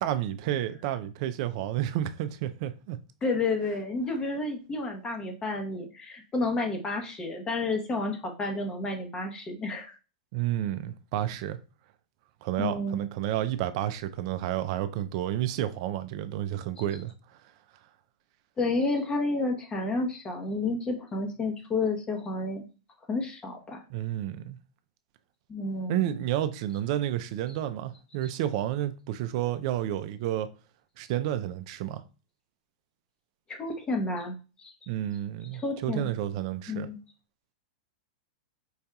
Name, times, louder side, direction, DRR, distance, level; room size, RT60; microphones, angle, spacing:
voice 1, 0.0-3.0 10.3-11.6 12.4-17.1 23.9-24.6 25.9-30.5 31.0-32.0 34.9-36.9, right 12 dB, 55° right, 0.4 m, -30 dB
voice 2, 3.2-9.9 12.6-13.1 18.6-22.7 23.1-23.8 25.5-26.1 33.5-34.7 35.6-36.1 36.7-37.0, left 3 dB, 20° left, 0.9 m, -30 dB
4.8 x 2.7 x 2.3 m
hypercardioid pair, 115°, 4 cm